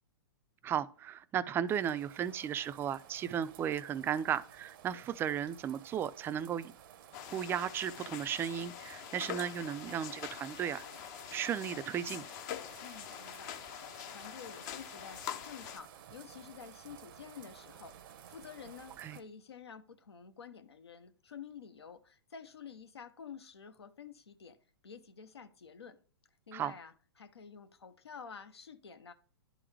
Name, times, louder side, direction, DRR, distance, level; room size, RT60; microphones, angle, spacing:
voice 1, 0.6-6.7 7.3-10.8 11.3-12.2 19.0-19.2 26.5-26.7, right 9 dB, 15° right, 0.3 m, -35 dB
sound 1, 1.7-19.2, right 9 dB, 55° right, 0.6 m, -55 dB
sound 2, 7.1-15.8, left 11 dB, 45° left, 0.6 m, -45 dB
voice 2, 12.8-13.8 14.1-24.6 24.8-26.0 26.5-29.1, left 6 dB, 90° left, 0.8 m, -50 dB
11.0 x 3.8 x 3.2 m
hypercardioid pair, 125°, 13 cm